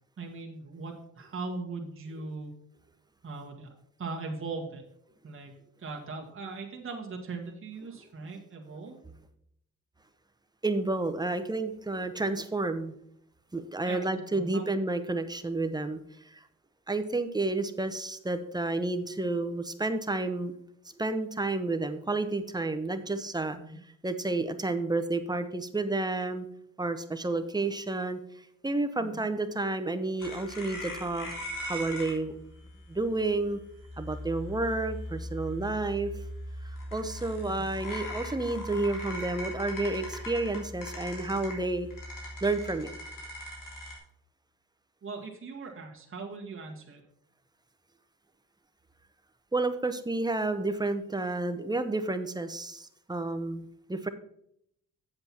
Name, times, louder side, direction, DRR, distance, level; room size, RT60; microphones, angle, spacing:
voice 1, 0.2-2.6 3.2-4.8 5.2-5.5 5.8-9.0 13.9-14.7 23.5-23.8 29.0-29.2 45.0-47.0, right 3 dB, 40° right, 0 dB, 1.7 m, -40 dB
voice 2, 10.6-12.9 13.5-16.0 16.3-16.4 16.9-20.5 21.0-23.6 24.0-26.5 26.8-28.2 28.6-31.3 31.6-32.3 32.9-33.6 34.0-36.1 36.9-41.9 42.4-42.9 49.5-54.1, right 2 dB, 10° right, 9 dB, 0.8 m, -30 dB
sound 1, 30.2-44.0, left 1 dB, 70° left, 3.4 m, -40 dB
7.8 x 7.8 x 4.4 m, 0.72 s
cardioid pair, 105°, 33 cm